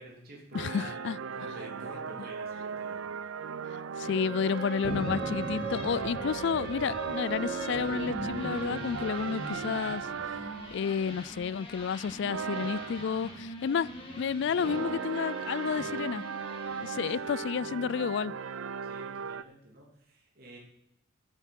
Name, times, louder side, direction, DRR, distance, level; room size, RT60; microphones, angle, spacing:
voice 1, 0.0-3.0 17.2-17.5 18.8-20.6, right 1 dB, 50° right, -1 dB, 2.9 m, -49 dB
voice 2, 0.5-1.2 4.0-10.1 10.7-13.9 14.2-16.2 16.8-18.3, left 6 dB, 60° left, 22 dB, 0.3 m, -31 dB
sound 1, 0.5-11.0 12.2-13.2 14.5-19.4, right 6 dB, 80° right, 0.5 m, -37 dB
sound 2, 4.0-17.6, right 1 dB, 25° left, 3.0 m, -42 dB
Thunder, 4.8-9.7 9.9-10.0 10.2-10.8 11.3-12.5, right 2 dB, 25° right, 0.4 m, -42 dB
11.5 x 9.0 x 6.0 m, 0.76 s
head